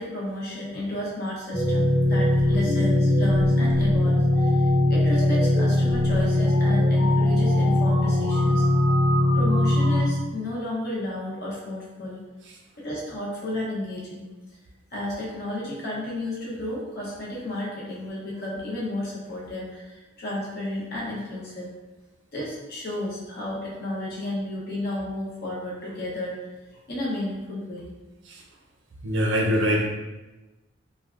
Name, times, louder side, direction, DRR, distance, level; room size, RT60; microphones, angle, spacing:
voice 1, 0.0-8.7 9.3-12.2 12.8-14.3 14.9-21.7 22.3-26.5 26.9-27.9, left 1 dB, 50° left, -5 dB, 0.8 m, -32 dB
sound 1, 1.5-10.0, left 1 dB, 15° left, 0.9 m, -20 dB
voice 2, 29.0-29.9, equal, 65° right, 0 dB, 0.5 m, -22 dB
3.3 x 2.2 x 2.4 m, 1.1 s
head